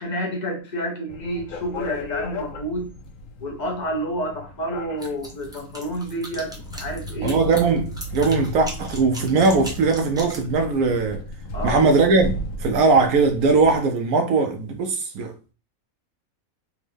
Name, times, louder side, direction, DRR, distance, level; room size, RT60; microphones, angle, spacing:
voice 1, 0.0-2.9 3.4-7.4 11.5-11.9, equal, 50° left, 0.6 m, -29 dB
sound 1, 1.1-13.8, left 1 dB, 70° left, 0.9 m, -35 dB
sound 2, 5.0-10.5, equal, 5° right, 0.5 m, -38 dB
voice 2, 7.2-11.2 11.6-15.3, right 4 dB, 85° right, 1.0 m, -20 dB
3.5 x 2.2 x 3.3 m
omnidirectional pair, 1.5 m